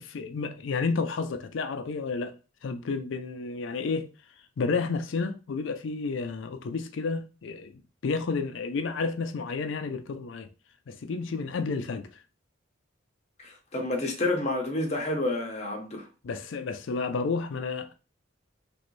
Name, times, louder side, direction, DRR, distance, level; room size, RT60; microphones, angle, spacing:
voice 1, 0.0-2.3 2.6-4.1 4.6-10.5 10.9-12.1 16.2-17.9, left 4 dB, 70° left, 0.4 m, -31 dB
voice 2, 13.4-16.0, left 2 dB, 35° left, 0.7 m, -29 dB
3.1 x 2.5 x 3.1 m
head